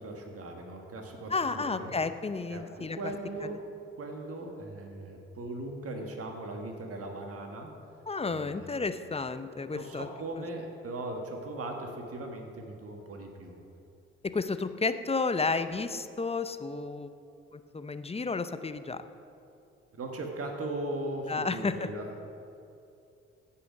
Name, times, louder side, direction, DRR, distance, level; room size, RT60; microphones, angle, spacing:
voice 1, 0.0-1.9 2.5-3.6 4.0-7.7 8.3-8.7 9.7-13.6 20.0-22.1, right 2 dB, 50° right, 3 dB, 1.6 m, -38 dB
voice 2, 1.3-3.1 3.4-3.5 8.1-10.1 14.2-17.1 17.5-19.0 21.3-21.9, left 4 dB, 20° left, 11 dB, 0.6 m, -32 dB
15.5 x 5.8 x 5.2 m, 2.6 s
hypercardioid pair, 40°, 31 cm